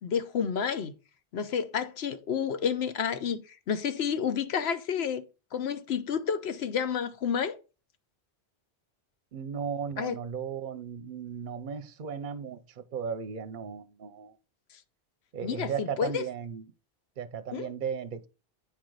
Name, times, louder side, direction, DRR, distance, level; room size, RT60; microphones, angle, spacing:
voice 1, 0.0-0.9 1.3-3.4 3.7-5.2 5.5-7.6 10.0-10.2 15.4-16.2 17.5-17.7, left 7 dB, 75° left, 1.0 m, -30 dB
voice 2, 9.3-14.4 15.3-16.6 17.2-18.3, right 7 dB, 55° right, 0.7 m, -36 dB
9.1 x 4.6 x 3.9 m
omnidirectional pair, 1.1 m